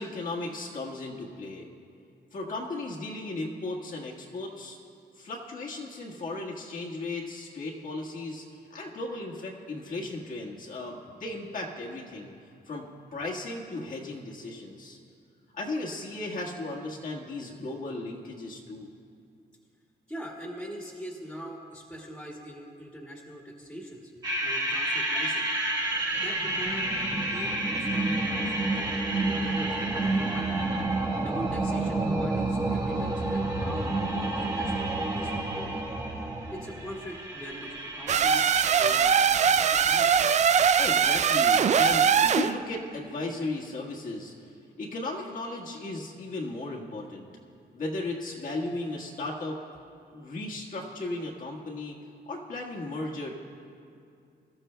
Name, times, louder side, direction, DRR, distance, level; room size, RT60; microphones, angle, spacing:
voice 1, 0.0-1.7 2.3-4.8 5.1-8.4 8.7-12.3 12.6-15.0 15.5-18.9 40.8-44.5 44.8-47.3 47.7-49.6 50.1-52.0 52.3-53.3, left 2 dB, 50° left, -3 dB, 1.6 m, -36 dB
voice 2, 20.1-25.5 26.2-30.6 31.2-35.8 36.5-38.5 38.8-40.3, equal, 5° left, -4 dB, 1.9 m, -42 dB
sound 1, 24.2-39.5, right 2 dB, 20° right, 1.3 m, -29 dB
sound 2, 38.1-42.5, right 7 dB, 40° right, 0.4 m, -22 dB
24.0 x 14.0 x 2.3 m, 2.4 s
wide cardioid pair, 140°, 18 cm